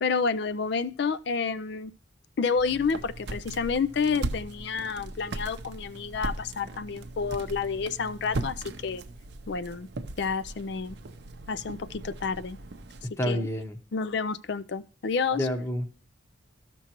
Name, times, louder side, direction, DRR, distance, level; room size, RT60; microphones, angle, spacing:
voice 1, 0.0-1.9 2.4-9.0 9.5-9.9 10.2-11.0 11.5-12.6 13.3-13.5 13.9-15.5, left 5 dB, 60° left, 0.4 m, -29 dB
sound 1, 2.5-13.1, right 2 dB, 55° right, 0.6 m, -38 dB
voice 2, 13.0-13.8 15.4-15.9, equal, 15° left, 0.9 m, -29 dB
13.5 x 6.0 x 2.9 m
head